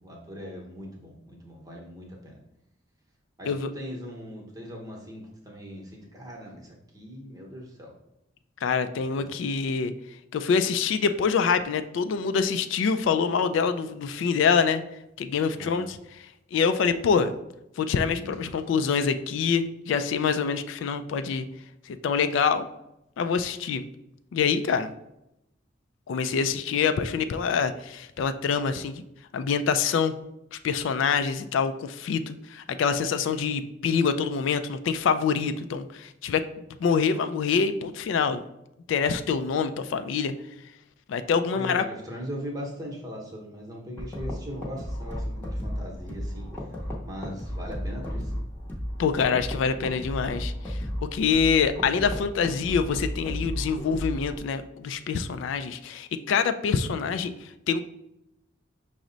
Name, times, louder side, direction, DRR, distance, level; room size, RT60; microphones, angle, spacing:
voice 1, 0.0-2.4 3.4-7.9 9.2-9.3 15.5-15.9 18.1-18.8 41.5-46.7 47.0-48.3, equal, 20° right, -1 dB, 0.8 m, -40 dB
voice 2, 8.6-9.9 10.3-14.8 15.2-16.0 16.5-17.3 17.8-21.4 21.9-22.7 23.2-23.8 24.3-24.9 26.1-29.0 29.3-30.2 30.5-36.4 36.8-38.4 38.9-40.3 41.1-41.8 49.0-50.8 51.1-57.8, left 6 dB, 75° left, 10 dB, 0.3 m, -25 dB
sound 1, 44.0-54.4, equal, 10° left, 0.7 m, -34 dB
6.0 x 2.1 x 3.8 m, 0.84 s
head